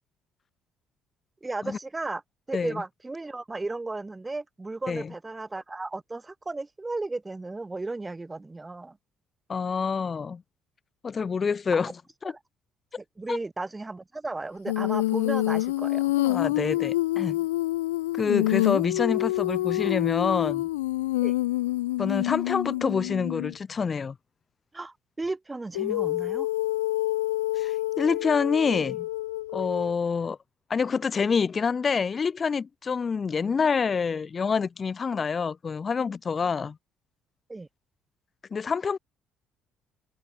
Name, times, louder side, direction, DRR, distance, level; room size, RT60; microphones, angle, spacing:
voice 1, 1.4-2.2 2.5-9.0 12.2-12.4 13.0-16.1 21.2-21.3 24.7-26.5 37.5-37.7, right 2 dB, 20° right, 6.4 m, -35 dB
voice 2, 9.5-10.4 11.0-11.9 12.2-12.3 13.3-13.4 16.2-17.4 18.2-20.7 22.0-24.1 27.6-29.0 29.5-30.4 30.7-36.8 38.5-39.0, left 5 dB, 40° left, 4.8 m, -27 dB
Female singing, 14.7-23.5 25.7-30.0, left 17 dB, 90° left, 1.0 m, -27 dB
hypercardioid pair, 60°, 0 cm